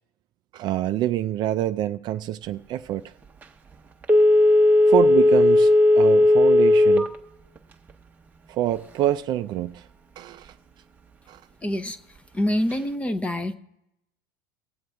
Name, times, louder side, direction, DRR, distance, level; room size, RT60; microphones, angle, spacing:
voice 1, 0.5-3.0 4.9-7.1 8.5-9.8 10.2-10.5 11.3-11.4, right 12 dB, 40° right, 0.4 m, -26 dB
Telephone, 4.0-7.2 7.6-7.7, left 1 dB, 15° right, 0.9 m, -16 dB
voice 2, 11.6-12.0 12.3-13.6, left 1 dB, 10° left, 0.7 m, -25 dB
19.0 x 7.7 x 3.5 m
supercardioid pair, 120°, 11 cm